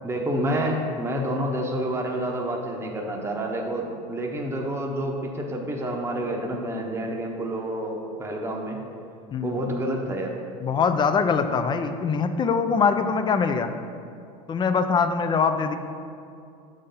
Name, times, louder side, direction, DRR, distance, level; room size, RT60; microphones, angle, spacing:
voice 1, 0.0-8.8 9.4-10.3, right 1 dB, 15° right, 0 dB, 0.9 m, -28 dB
voice 2, 9.3-9.7 10.6-13.7 14.5-15.8, left 5 dB, 25° left, 9 dB, 0.5 m, -23 dB
6.5 x 3.8 x 5.6 m, 2.5 s
supercardioid pair, 100°, 18 cm